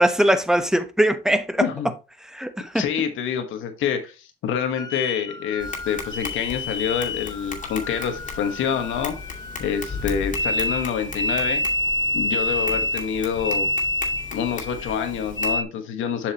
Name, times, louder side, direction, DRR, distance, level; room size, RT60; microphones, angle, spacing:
voice 1, 0.0-1.7 2.3-2.8, right 1 dB, 5° right, 1.0 m, -21 dB
voice 2, 1.6-1.9 2.7-9.1 9.6-11.6 12.1-13.7 14.3-16.3, left 8 dB, 85° left, 1.6 m, -27 dB
sound 1, 4.8-15.6, left 1 dB, 20° left, 0.9 m, -28 dB
Tap, 5.6-15.6, left 4 dB, 40° left, 2.3 m, -37 dB
7.4 x 6.4 x 3.0 m
cardioid pair, 90°, 20 cm